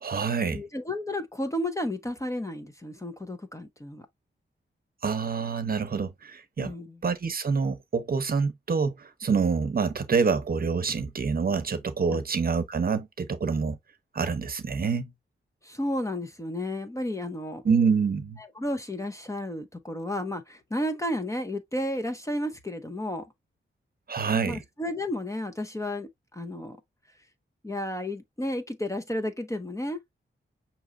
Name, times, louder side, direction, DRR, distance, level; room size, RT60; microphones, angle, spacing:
voice 1, 0.0-0.6 5.0-6.7 7.0-13.8 14.1-15.1 17.6-18.4 24.1-24.6, right 5 dB, 45° right, 0.8 m, -26 dB
voice 2, 0.5-4.1 6.6-7.0 12.1-12.2 15.6-17.6 18.6-23.3 24.5-26.8 27.6-30.0, left 1 dB, 15° left, 0.7 m, -32 dB
6.2 x 2.9 x 2.5 m
wide cardioid pair, 125°, 20 cm